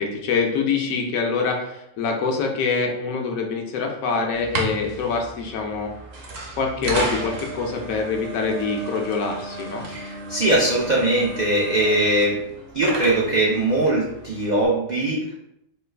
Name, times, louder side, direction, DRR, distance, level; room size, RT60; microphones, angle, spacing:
voice 1, 0.0-5.9 6.6-9.9, left 4 dB, 75° left, 2 dB, 1.0 m, -25 dB
sound 1, 4.3-14.7, right 2 dB, 55° right, 0.8 m, -33 dB
voice 2, 9.9-12.4 12.7-15.4, right 1 dB, 75° right, -4 dB, 0.4 m, -21 dB
3.1 x 2.3 x 3.3 m, 0.78 s
omnidirectional pair, 1.5 m